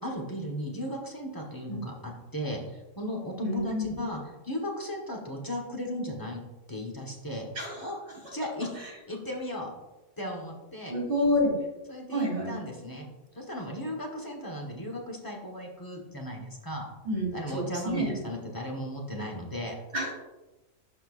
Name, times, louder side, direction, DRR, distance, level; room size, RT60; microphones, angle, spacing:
voice 1, 0.0-4.2 4.4-6.4 6.7-7.5 7.8-8.0 8.3-8.7 9.1-9.7 10.2-10.9 11.9-13.1 13.3-16.8 17.3-19.7, left 1 dB, 20° left, -1 dB, 1.1 m, -36 dB
voice 2, 3.4-4.0 7.5-8.2 8.8-8.9 10.9-11.5 12.1-12.5 17.0-18.2 19.9-20.1, left 1 dB, 65° right, -2 dB, 2.9 m, -29 dB
12.0 x 4.5 x 2.4 m, 1.1 s
omnidirectional pair, 1.3 m